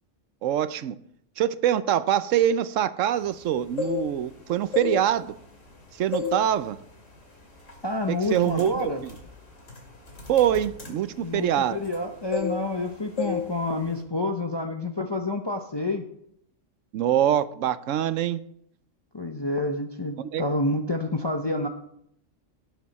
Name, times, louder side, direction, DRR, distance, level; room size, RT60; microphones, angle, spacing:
voice 1, 0.4-1.0 1.4-5.3 6.0-6.8 8.1-8.9 10.3-11.8 16.9-18.4 20.3-20.4, right 10 dB, 85° right, 14 dB, 1.0 m, -24 dB
sound 1, 3.6-4.3 4.7-5.7 6.1-6.5 6.8-7.1 7.7-7.9 8.2-12.0 12.3-12.9 13.2-13.5 13.7-14.0, left 6 dB, 85° left, 2.8 m, -32 dB
voice 2, 7.8-9.0 11.2-16.0 19.1-21.7, left 2 dB, 25° left, 4 dB, 0.7 m, -28 dB
17.5 x 7.3 x 4.2 m, 0.71 s
omnidirectional pair, 1.3 m